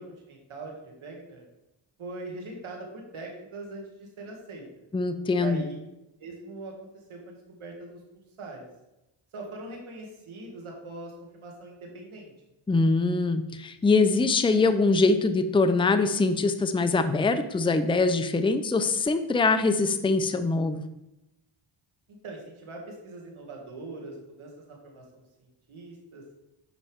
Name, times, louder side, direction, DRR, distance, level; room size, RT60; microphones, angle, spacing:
voice 1, 0.0-1.4 2.0-4.6 5.4-5.8 6.2-8.0 8.4-8.7 9.3-12.3 22.2-26.2, right 2 dB, 80° right, 0 dB, 2.3 m, -42 dB
voice 2, 4.9-5.6 12.7-20.8, left 3 dB, 10° left, 9 dB, 0.5 m, -23 dB
9.9 x 5.4 x 3.6 m, 0.93 s
cardioid pair, 85°, 49 cm